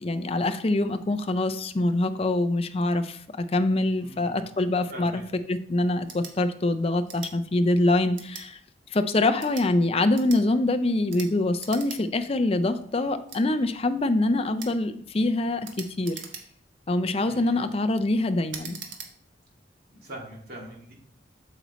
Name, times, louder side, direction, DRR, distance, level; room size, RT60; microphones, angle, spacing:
voice 1, 0.0-5.2 5.5-8.6 8.9-16.2 16.9-18.8, left 2 dB, 30° left, 10 dB, 0.5 m, -25 dB
voice 2, 3.9-4.5 4.9-5.2 17.2-17.6 19.9-20.9, right 1 dB, 55° right, -3 dB, 2.5 m, -42 dB
sound 1, 6.1-6.3 7.0-7.3 8.1-8.5 9.3-9.7 10.1-10.4 11.1-11.3 11.6-12.0 12.3-12.4 13.3-13.4 14.6-14.8 15.6-16.7 17.2-17.6 18.5-19.1, right 6 dB, 90° right, 1.3 m, -41 dB
8.2 x 6.9 x 3.1 m, 0.65 s
head